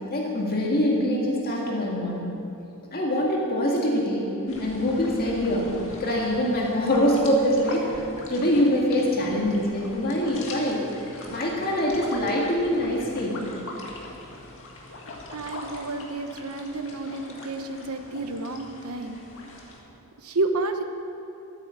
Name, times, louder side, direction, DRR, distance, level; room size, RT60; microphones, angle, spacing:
voice 1, 0.1-2.3 2.9-4.3 4.6-5.7 6.0-8.0 8.3-10.8 11.3-13.4, equal, 45° left, -2 dB, 1.9 m, -24 dB
sound 1, 4.5-19.8, left 2 dB, 60° left, 2.1 m, -41 dB
voice 2, 15.3-19.2 20.2-20.8, right 2 dB, 75° right, 6 dB, 1.1 m, -30 dB
13.0 x 9.6 x 7.6 m, 2.8 s
head